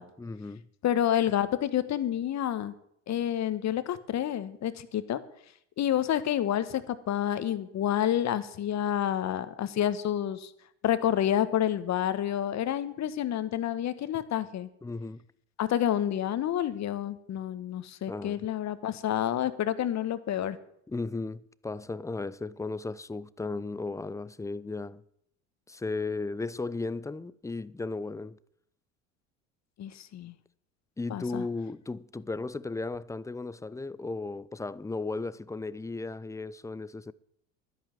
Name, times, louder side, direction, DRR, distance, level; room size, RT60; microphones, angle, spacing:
voice 1, 0.2-0.7 14.8-15.2 18.1-18.5 20.9-25.0 25.7-28.4 31.0-37.1, left 3 dB, 10° left, 0.5 m, -35 dB
voice 2, 0.8-2.7 3.1-5.2 5.8-10.5 10.8-14.7 15.6-20.6 29.8-30.3 31.1-31.5, left 11 dB, 45° left, 1.4 m, -29 dB
12.0 x 10.5 x 7.5 m
hypercardioid pair, 75°, 38 cm